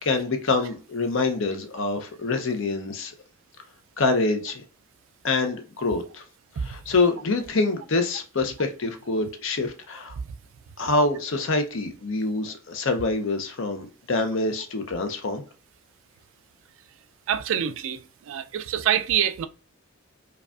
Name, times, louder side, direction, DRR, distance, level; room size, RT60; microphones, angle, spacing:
voice 1, 0.0-3.1 4.0-4.6 5.2-6.2 6.6-10.1 10.8-15.4, left 3 dB, 65° left, 0.6 m, -26 dB
voice 2, 17.3-18.0 18.3-19.5, right 9 dB, 70° right, 0.3 m, -25 dB
4.8 x 2.3 x 2.3 m
head